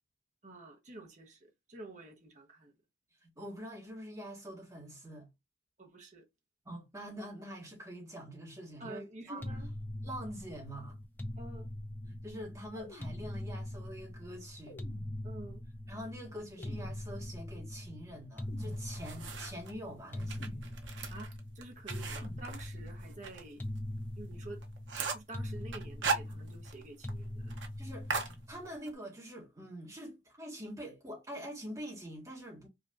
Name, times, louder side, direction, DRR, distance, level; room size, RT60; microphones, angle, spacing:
voice 1, 0.4-2.7 5.8-6.3 8.8-9.7 11.4-11.7 15.2-15.6 21.1-23.6 24.2-24.6 25.1-27.5, right 2 dB, 40° right, 1.1 m, -49 dB
voice 2, 3.2-5.3 6.6-9.4 10.0-11.0 12.1-14.8 15.9-20.6 27.8-32.7, equal, 20° right, 1.7 m, -45 dB
sound 1, 9.4-28.7, left 1 dB, 10° left, 0.5 m, -42 dB
sound 2, 12.7-14.0 14.7-15.8 16.6-17.7 18.5-19.5 20.4-21.3 22.2-23.1, left 1 dB, 50° left, 1.1 m, -53 dB
sound 3, 18.6-19.7 20.2-23.4 23.8-23.9 24.3-24.4 24.6-25.3 25.7-26.8 27.1-27.2 27.5-27.7 28.1-28.9, right 5 dB, 85° right, 0.8 m, -37 dB
4.9 x 2.9 x 2.5 m
head